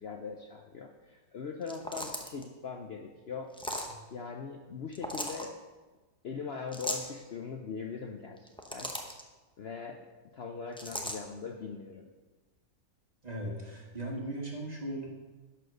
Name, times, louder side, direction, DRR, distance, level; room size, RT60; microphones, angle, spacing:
voice 1, 0.0-3.5 4.1-5.5 6.2-8.9 9.6-10.0 10.3-12.1, left 5 dB, 55° left, 2 dB, 0.8 m, -41 dB
sound 1, 1.6-2.4 3.5-3.9 4.9-5.5 6.7-7.1 8.4-9.2 10.8-11.2, left 1 dB, 5° left, 0.4 m, -37 dB
voice 2, 13.2-15.1, right 1 dB, 30° right, -1 dB, 1.6 m, -37 dB
11.0 x 4.4 x 6.5 m, 1.2 s
omnidirectional pair, 1.6 m